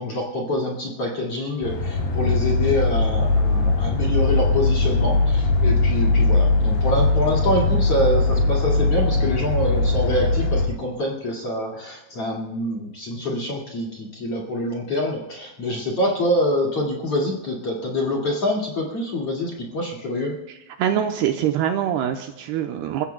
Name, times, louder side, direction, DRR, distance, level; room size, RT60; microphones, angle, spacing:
voice 1, 0.0-20.4, left 1 dB, 40° left, -2 dB, 2.5 m, -25 dB
sound 1, 1.6-10.7, left 3 dB, 65° left, 5.7 m, -20 dB
voice 2, 20.8-23.1, right 10 dB, 80° right, 5 dB, 2.5 m, -24 dB
29.0 x 15.0 x 2.3 m, 0.92 s
omnidirectional pair, 5.2 m